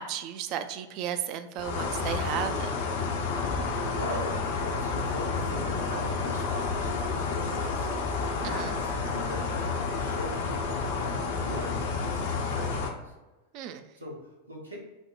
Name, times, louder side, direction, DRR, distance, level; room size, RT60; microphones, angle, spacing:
voice 1, 0.0-2.7 8.6-8.7 13.5-13.9, right 9 dB, 40° right, 9 dB, 0.3 m, -34 dB
sound 1, 1.6-12.9, left 4 dB, 55° left, 0.5 m, -30 dB
voice 2, 3.6-7.9 8.4-13.1 14.0-14.8, equal, 85° right, -2 dB, 0.9 m, -41 dB
6.0 x 2.1 x 2.3 m, 1.1 s
figure-of-eight pair, 90°, 0 cm